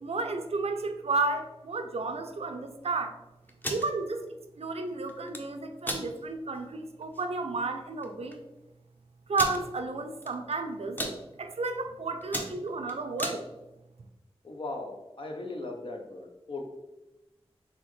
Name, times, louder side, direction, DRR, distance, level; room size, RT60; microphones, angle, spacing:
voice 1, 0.0-3.2 3.7-8.4 9.3-13.4, right 3 dB, 75° right, 6 dB, 0.5 m, -32 dB
sound 1, 3.5-3.9 5.1-5.4 5.8-6.1 6.6-6.7 7.0-7.2 8.0-8.1 8.3-8.4 9.3-9.6 10.2-10.5 10.8-11.2 11.7-11.9 12.2-13.4, equal, 20° left, 0.8 m, -34 dB
voice 2, 14.4-16.7, left 2 dB, 55° left, 2 dB, 0.9 m, -38 dB
4.2 x 3.6 x 3.2 m, 1.0 s
cardioid pair, 45°, 10 cm